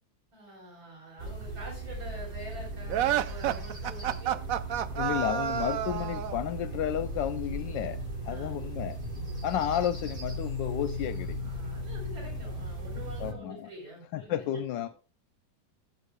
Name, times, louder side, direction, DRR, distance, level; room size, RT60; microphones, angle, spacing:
voice 1, 0.3-4.4 5.7-5.8 8.2-8.6 11.0-11.2 11.4-14.4, right 1 dB, 85° right, 4.8 m, -46 dB
sound 1, 1.2-13.3, right 1 dB, 25° right, 2.7 m, -37 dB
sound 2, 2.9-6.4, right 11 dB, 65° right, 0.8 m, -30 dB
voice 2, 4.9-9.0 9.4-11.4 13.2-13.7 14.1-14.9, left 10 dB, 80° left, 1.3 m, -32 dB
14.0 x 8.2 x 2.2 m
omnidirectional pair, 2.0 m